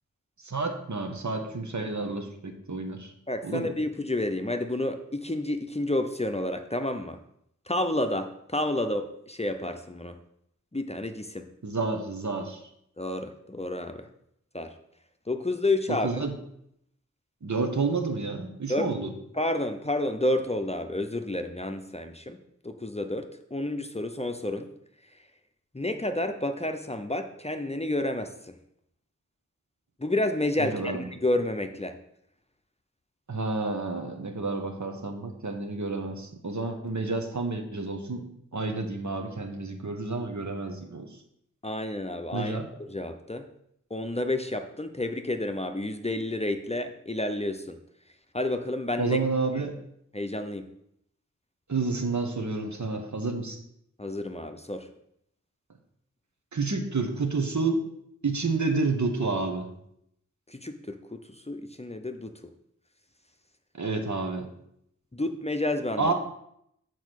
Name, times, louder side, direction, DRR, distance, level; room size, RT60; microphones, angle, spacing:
voice 1, 0.4-3.1 3.4-3.7 11.6-12.6 15.9-16.3 17.4-19.1 30.6-31.0 33.3-38.2 38.5-41.2 42.3-42.7 49.0-49.8 51.7-53.6 56.5-57.9 58.2-59.7 63.7-64.5 66.0-66.1, right 3 dB, 65° right, 4 dB, 1.2 m, -30 dB
voice 2, 3.3-7.2 7.7-10.2 10.7-11.5 13.0-14.1 14.5-14.7 15.3-16.2 18.7-18.9 19.4-22.4 22.6-24.7 25.7-28.5 30.0-32.0 41.6-43.5 43.9-47.8 48.3-49.2 50.1-50.7 54.0-54.9 60.5-62.4 65.1-66.1, left 1 dB, 20° left, 7 dB, 0.6 m, -30 dB
7.2 x 4.5 x 6.3 m, 0.74 s
wide cardioid pair, 60°, 31 cm